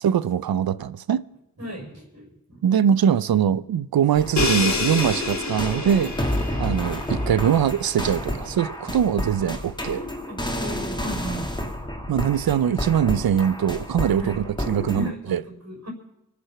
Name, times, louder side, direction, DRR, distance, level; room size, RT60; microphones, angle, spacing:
voice 1, 0.0-1.2 2.6-6.1 6.6-10.0 12.1-15.4, right 9 dB, 90° right, 0.6 m, -22 dB
voice 2, 1.6-2.6 10.3-11.5 14.2-14.3 14.8-15.9, equal, 50° right, 6.1 m, -35 dB
sound 1, 4.1-15.1, left 1 dB, 15° left, 2.5 m, -30 dB
Crash cymbal, 4.4-8.2, left 4 dB, 50° left, 2.5 m, -28 dB
24.0 x 8.5 x 5.9 m
cardioid pair, 40°, 35 cm